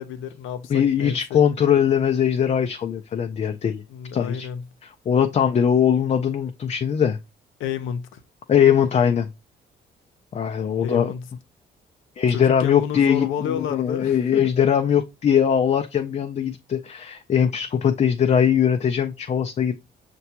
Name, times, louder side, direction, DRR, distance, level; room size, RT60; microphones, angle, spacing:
voice 1, 0.0-1.4 3.9-4.6 7.6-8.2 10.8-11.2 12.3-14.4, left 8 dB, 85° left, 0.6 m, -30 dB
voice 2, 0.7-3.8 4.1-4.5 4.8-7.2 8.5-9.3 10.3-11.1 12.2-19.7, left 8 dB, 35° left, 0.4 m, -21 dB
5.8 x 2.2 x 2.8 m
cardioid pair, 90°, 20 cm